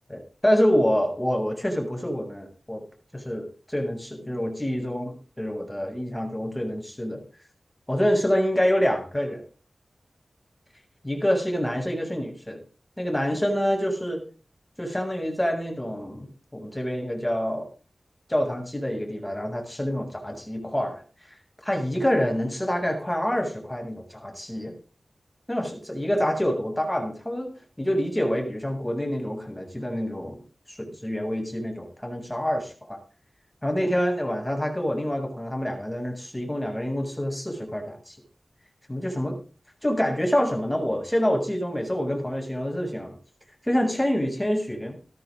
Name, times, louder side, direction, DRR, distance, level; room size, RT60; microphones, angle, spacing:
voice 1, 0.1-2.8 3.1-7.2 7.9-9.4 11.0-12.6 13.0-14.2 14.8-17.7 18.3-21.0 21.6-24.7 25.5-27.5 27.8-30.4 30.7-33.0 33.6-38.2 38.9-39.3 39.8-43.2 43.6-44.9, equal, 10° left, 3 dB, 7.6 m, -26 dB
16.0 x 13.0 x 3.9 m, 0.38 s
cardioid pair, 50°, 0 cm